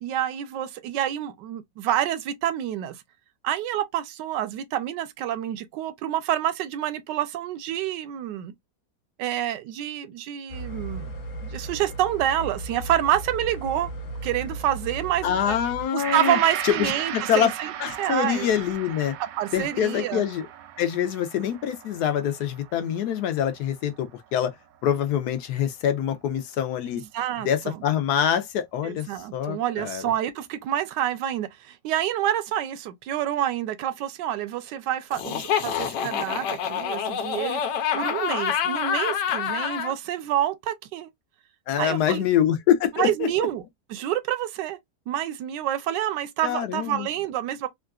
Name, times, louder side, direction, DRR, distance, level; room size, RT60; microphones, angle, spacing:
voice 1, 0.0-3.0 3.4-8.5 9.2-11.1 11.4-13.9 14.2-15.6 15.9-18.5 19.2-20.2 26.9-27.8 28.8-37.6 37.9-41.1 41.8-42.2 42.9-43.6 43.9-44.8 45.1-47.7, right 11 dB, 85° right, 1.2 m, -28 dB
sound 1, 10.5-15.8, right 2 dB, 55° left, 1.4 m, -36 dB
voice 2, 15.2-17.5 17.8-19.1 19.5-20.5 20.8-24.5 24.8-27.0 27.4-29.1 29.3-30.0 41.7-43.3 46.4-47.1, left 9 dB, 70° left, 1.1 m, -25 dB
Gong, 16.0-24.3 24.7-24.8, right 10 dB, 70° right, 0.9 m, -36 dB
Laughter, 35.1-39.9, left 8 dB, 85° left, 1.3 m, -27 dB
3.7 x 2.4 x 2.3 m
omnidirectional pair, 1.8 m